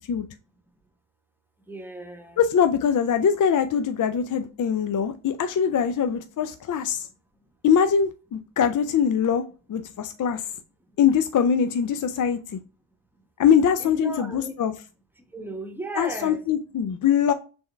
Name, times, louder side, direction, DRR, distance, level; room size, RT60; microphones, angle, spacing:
voice 1, 1.7-2.4 13.8-14.5 15.2-16.4, right 1 dB, 5° right, 1.0 m, -35 dB
voice 2, 2.4-7.1 7.6-10.4 11.0-12.6 13.4-14.7 16.0-17.3, left 7 dB, 40° left, 0.4 m, -22 dB
4.3 x 3.3 x 3.3 m
supercardioid pair, 55°, 49 cm